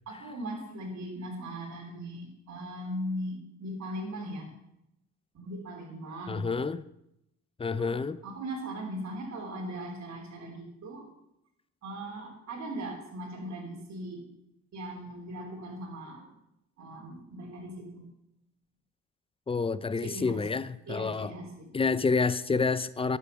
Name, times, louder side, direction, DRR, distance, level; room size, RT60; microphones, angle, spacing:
voice 1, 0.1-4.5 5.3-6.5 7.9-8.0 8.2-11.1 11.8-14.3 14.7-16.3 16.8-18.1 20.0-20.4 20.9-21.8, right 1 dB, 65° right, 3.4 m, -39 dB
voice 2, 6.3-6.8 7.6-8.2 19.5-21.3 21.7-23.2, left 4 dB, 20° left, 0.5 m, -28 dB
11.5 x 8.5 x 5.7 m
cardioid pair, 90°, 30 cm